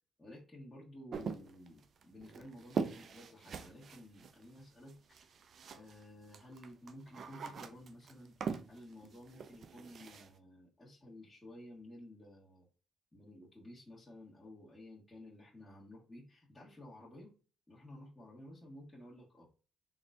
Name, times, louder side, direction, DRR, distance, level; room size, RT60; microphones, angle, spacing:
voice 1, 0.2-5.3 5.7-12.7 13.1-17.3 17.7-19.5, left 1 dB, 10° left, -8 dB, 1.6 m, -53 dB
sound 1, 1.1-6.0 6.3-10.3, right 6 dB, 55° right, 0.4 m, -42 dB
3.9 x 3.5 x 2.6 m, 0.36 s
cardioid pair, 90°, 0 cm